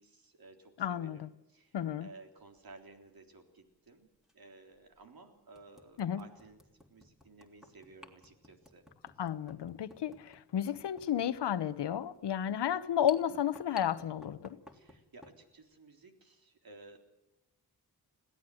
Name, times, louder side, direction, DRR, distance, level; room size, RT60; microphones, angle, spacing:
voice 1, 0.0-4.1 4.3-6.6 6.9-8.9 14.7-17.0, right 3 dB, 60° right, 3.8 m, -56 dB
voice 2, 0.8-1.3 1.7-2.1 6.0-6.2 9.2-14.6, left 10 dB, 80° left, 1.0 m, -32 dB
sound 1, 2.6-2.8 4.2-4.3 4.9-5.0 5.5-15.4, left 2 dB, ahead, 3.2 m, -57 dB
21.5 x 17.0 x 7.7 m
cardioid pair, 75°, 40 cm